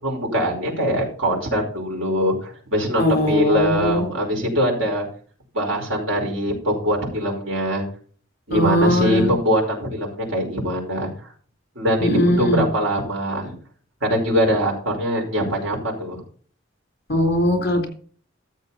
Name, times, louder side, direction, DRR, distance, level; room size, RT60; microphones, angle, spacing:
voice 1, 0.0-5.1 5.5-7.8 8.5-11.1 11.8-13.6 14.0-16.2, equal, 80° right, -1 dB, 5.2 m, -22 dB
voice 2, 3.0-4.1 8.5-9.3 12.0-12.6 17.1-17.9, left 1 dB, 55° left, 3 dB, 3.8 m, -20 dB
13.5 x 7.5 x 4.2 m, 0.44 s
head